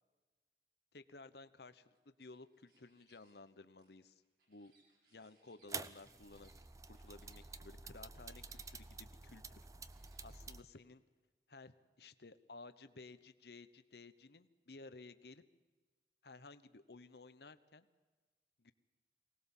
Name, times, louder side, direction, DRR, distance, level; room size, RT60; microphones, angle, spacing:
voice 1, 0.9-4.2 4.5-4.7 5.1-6.5 6.8-11.0 11.5-15.4 16.2-17.9 18.6-18.7, left 3 dB, 70° left, 12 dB, 1.0 m, -56 dB
sound 1, 1.9-3.3 3.8-7.4 7.9-9.0 9.7-10.7, right 3 dB, 60° right, 7.5 m, -74 dB
sound 2, 5.7-10.6, right 4 dB, 20° right, 0.6 m, -50 dB
23.5 x 19.0 x 7.3 m, 1.3 s
head